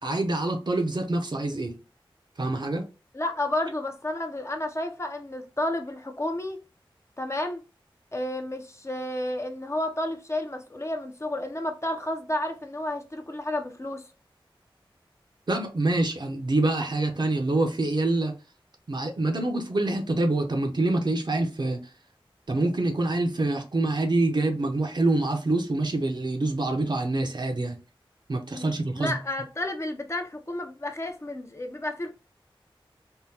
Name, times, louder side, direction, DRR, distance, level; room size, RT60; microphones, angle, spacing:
voice 1, 0.0-1.8 2.4-2.9 15.5-18.3 18.9-21.9 22.5-27.8 28.3-29.2, right 2 dB, 55° right, 0.7 m, -26 dB
voice 2, 3.1-6.6 7.2-7.6 8.1-14.0 28.5-32.1, left 1 dB, 30° left, 0.6 m, -31 dB
3.6 x 2.1 x 2.8 m
wide cardioid pair, 70°, 9 cm